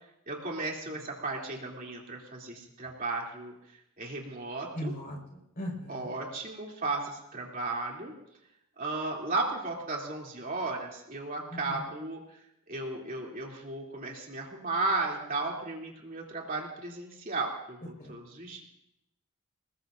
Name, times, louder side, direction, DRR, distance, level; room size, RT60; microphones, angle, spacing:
voice 1, 0.3-3.5 4.0-4.9 5.9-8.1 8.8-12.2 12.7-18.6, right 3 dB, 40° right, -2 dB, 3.0 m, -35 dB
voice 2, 4.7-6.1 11.5-11.9 18.0-18.2, equal, 40° left, 1 dB, 4.8 m, -39 dB
26.5 x 20.5 x 2.6 m, 0.81 s
head